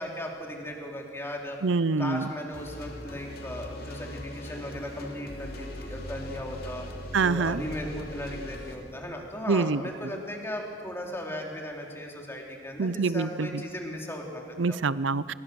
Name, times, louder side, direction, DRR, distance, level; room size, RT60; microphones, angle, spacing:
voice 1, 0.0-1.6 2.0-6.9 7.2-14.8, left 1 dB, 15° left, 0 dB, 3.4 m, -37 dB
voice 2, 1.6-2.3 7.1-7.6 9.5-9.8 12.8-13.6 14.6-15.3, right 4 dB, 75° right, 18 dB, 0.6 m, -26 dB
sound 1, 2.5-8.8, left 1 dB, 55° left, 2.9 m, -40 dB
27.5 x 22.5 x 7.0 m, 2.3 s
head